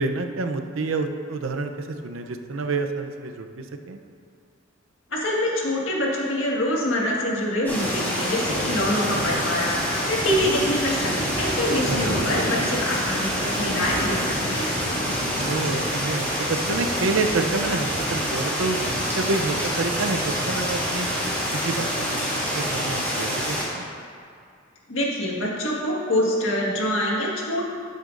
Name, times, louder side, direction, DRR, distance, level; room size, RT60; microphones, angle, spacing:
voice 1, 0.0-4.0 11.9-12.1 15.4-18.8 19.1-21.1 21.5-22.3 22.5-23.8, right 3 dB, 80° right, 6 dB, 0.6 m, -28 dB
voice 2, 5.1-14.7 24.9-27.6, left 1 dB, 75° left, -3 dB, 1.7 m, -25 dB
sound 1, 7.7-23.6, equal, 10° left, 2.1 m, -26 dB
13.0 x 8.0 x 2.5 m, 2.3 s
head